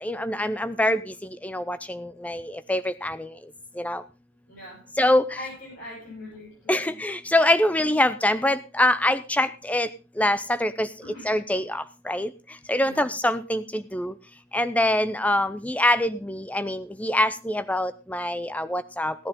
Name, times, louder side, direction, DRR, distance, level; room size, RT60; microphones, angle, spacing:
voice 1, 0.0-1.0 1.4-3.3 3.8-4.0 5.0-5.3 6.7-9.9 10.2-10.9 11.2-12.3 12.7-14.1 14.5-19.1, left 1 dB, 5° left, 14 dB, 0.5 m, -24 dB
voice 2, 4.5-4.9 5.3-7.0 11.0-11.4 12.8-13.1, left 1 dB, 60° left, -7 dB, 7.8 m, -42 dB
17.5 x 10.5 x 3.7 m, 0.31 s
head